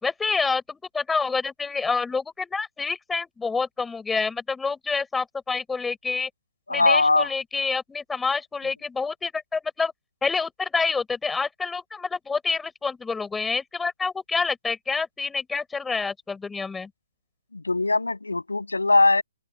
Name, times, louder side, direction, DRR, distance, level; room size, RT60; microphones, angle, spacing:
voice 1, 0.0-6.3 6.7-9.9 10.2-16.9, left 4 dB, 10° left, 5.8 m, -27 dB
voice 2, 6.7-7.3 17.5-19.2, left 3 dB, 85° left, 6.3 m, -21 dB
open air
figure-of-eight pair, 130°, 0 cm